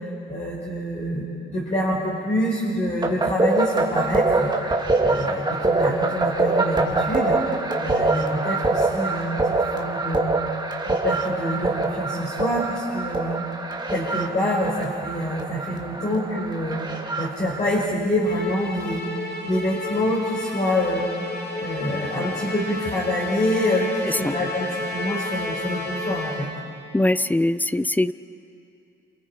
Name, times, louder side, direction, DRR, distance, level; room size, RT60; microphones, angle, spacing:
voice 1, 0.0-7.4 7.8-9.4 9.7-10.4 10.9-13.4 13.9-16.8 17.2-19.0 19.4-21.1 21.6-26.5, left 1 dB, 35° left, -5 dB, 5.2 m, -26 dB
sound 1, 3.0-17.8, right 3 dB, 20° right, 2.5 m, -24 dB
Musical instrument, 18.2-26.7, left 2 dB, 55° left, 4.8 m, -32 dB
voice 2, 26.9-28.1, left 1 dB, 10° left, 16 dB, 0.6 m, -22 dB
28.5 x 28.0 x 4.9 m, 2.7 s
cardioid pair, 90°, 20 cm